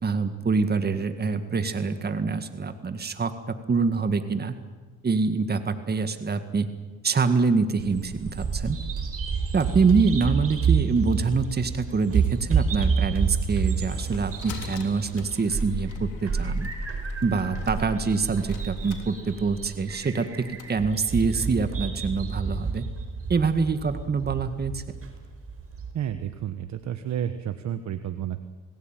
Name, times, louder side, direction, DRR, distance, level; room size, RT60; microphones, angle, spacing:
voice 1, 0.0-4.5 5.0-6.7 7.0-8.8 9.5-16.7 17.2-22.9 23.3-25.0, right 4 dB, 30° right, 9 dB, 1.9 m, -25 dB
Bird vocalization bird call bird song, 7.8-25.9, right 5 dB, 50° right, 5.1 m, -29 dB
sound 1, 13.4-20.7, left 7 dB, 80° left, 3.5 m, -46 dB
voice 2, 25.9-28.5, right 10 dB, 65° right, 9 dB, 1.3 m, -31 dB
27.5 x 19.0 x 9.1 m, 1.3 s
cardioid pair, 90°, 30 cm